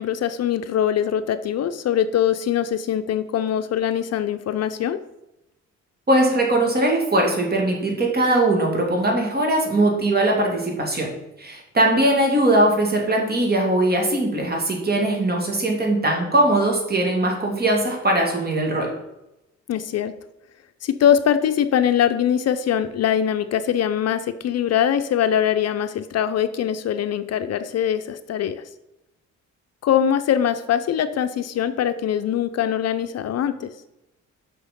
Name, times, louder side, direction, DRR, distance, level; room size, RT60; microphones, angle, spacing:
voice 1, 0.0-5.0 19.7-20.1 20.8-28.6 29.8-33.7, left 9 dB, 55° left, 11 dB, 0.5 m, -22 dB
voice 2, 6.1-11.1 11.4-18.9, right 1 dB, 30° right, 0 dB, 2.5 m, -20 dB
6.1 x 5.9 x 5.2 m, 0.91 s
cardioid pair, 90°, 30 cm